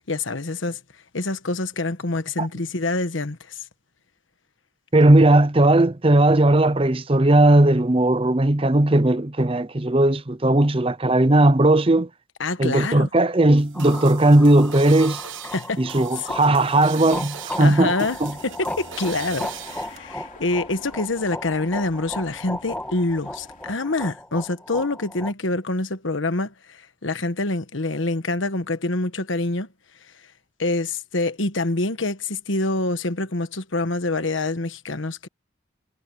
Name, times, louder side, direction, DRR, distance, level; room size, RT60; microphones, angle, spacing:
voice 1, 0.1-0.8 1.1-3.5 12.4-13.1 15.5-15.8 16.2-16.3 17.6-18.2 18.4-29.7 30.6-35.3, left 2 dB, 80° left, 1.3 m, -26 dB
voice 2, 4.9-12.1 12.6-15.2 15.8-17.9 18.2-18.3, right 1 dB, 30° right, 0.7 m, -17 dB
sound 1, 13.6-20.0, right 10 dB, 80° right, 1.2 m, -39 dB
sound 2, 13.7-25.3, left 1 dB, 5° left, 2.5 m, -36 dB
sound 3, 18.0-23.8, left 2 dB, 40° left, 3.6 m, -48 dB
head